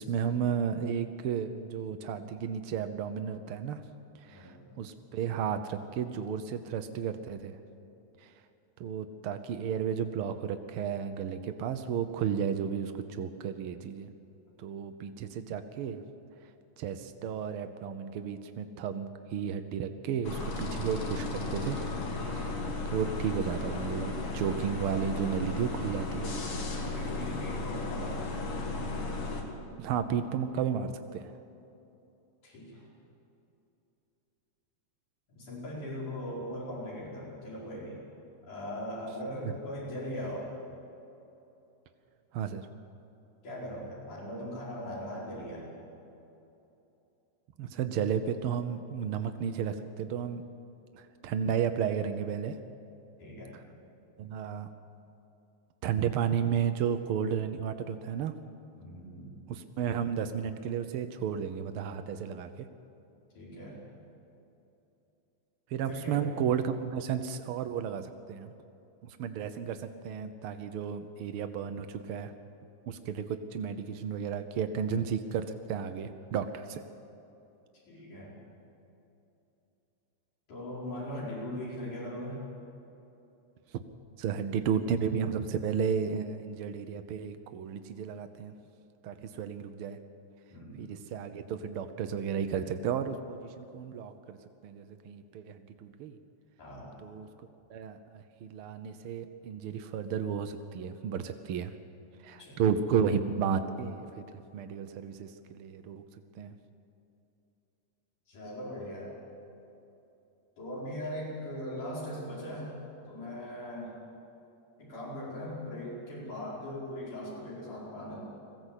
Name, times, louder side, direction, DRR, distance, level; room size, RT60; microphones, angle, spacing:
voice 1, 0.0-3.8 4.1-7.6 8.2-8.3 8.8-14.1 14.6-16.0 16.4-16.5 16.8-21.8 22.3-26.4 29.8-31.3 39.4-39.5 42.3-42.7 47.6-50.4 50.9-52.6 54.2-54.7 55.8-58.3 59.5-62.7 65.7-68.5 69.1-72.3 72.9-76.8 83.7-83.8 84.2-88.5 89.0-90.0 90.8-94.4 94.6-96.2 97.0-97.3 97.7-101.7 102.2-106.0 106.3-106.5, right 7 dB, 85° right, 9 dB, 1.2 m, -33 dB
voice 2, 4.3-4.6 26.8-28.4 32.4-32.9 35.3-38.0 38.5-40.5 43.4-45.7 53.2-53.5 58.8-59.3 63.3-63.8 65.9-66.2 77.9-78.3 80.5-82.4 90.5-90.8 96.6-96.9 102.4-102.6 108.3-109.2 110.6-113.9 114.8-118.2, left 1 dB, 80° left, -6 dB, 6.4 m, -39 dB
sound 1, 20.2-29.4, left 3 dB, 50° left, 2.9 m, -35 dB
21.0 x 15.5 x 8.2 m, 2.9 s
omnidirectional pair, 3.5 m